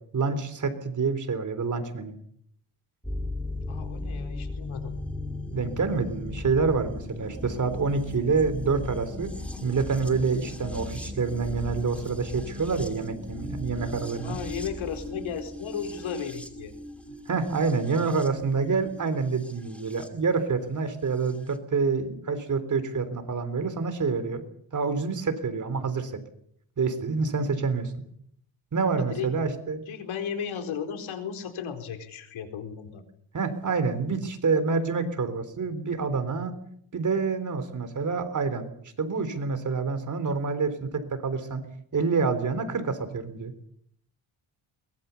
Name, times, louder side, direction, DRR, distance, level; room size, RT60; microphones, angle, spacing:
voice 1, 0.1-2.2 5.5-9.3 9.6-14.4 17.3-24.4 24.7-26.1 26.8-27.9 28.7-29.8 33.3-36.5 36.9-38.7 39.0-41.6 41.9-43.5, right 4 dB, 35° right, 10 dB, 3.7 m, -27 dB
sound 1, 3.0-20.1 21.3-21.4, left 2 dB, 5° left, 2.7 m, -37 dB
voice 2, 3.7-4.9 14.2-16.7 29.0-29.3 29.9-33.0, left 7 dB, 75° left, 6 dB, 4.4 m, -35 dB
23.5 x 22.0 x 7.1 m, 0.69 s
cardioid pair, 140°, 49 cm